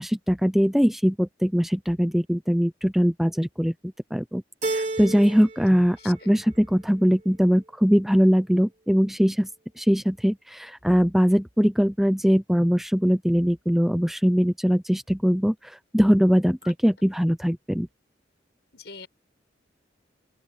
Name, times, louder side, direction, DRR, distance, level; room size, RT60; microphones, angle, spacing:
voice 1, 0.0-9.5 9.8-17.9, equal, ahead, 0.6 m, -21 dB
Keyboard (musical), 4.6-5.7 6.0-6.8, right 2 dB, 40° right, 4.8 m, -31 dB
voice 2, 18.7-19.1, left 5 dB, 70° left, 6.7 m, -42 dB
open air
head